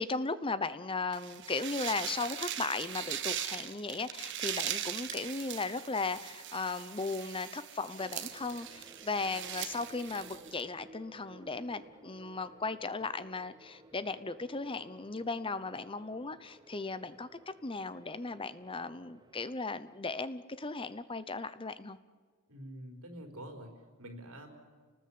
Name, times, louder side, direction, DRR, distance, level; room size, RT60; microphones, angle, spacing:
voice 1, 0.0-22.0, left 3 dB, 25° left, 14 dB, 0.8 m, -37 dB
sound 1, 1.1-10.6, right 10 dB, 55° right, 1.5 m, -40 dB
sound 2, 8.0-19.6, right 2 dB, 20° right, 1.0 m, -57 dB
voice 2, 22.5-24.5, right 1 dB, 85° right, 4 dB, 4.7 m, -47 dB
29.5 x 19.5 x 8.7 m, 1.5 s
head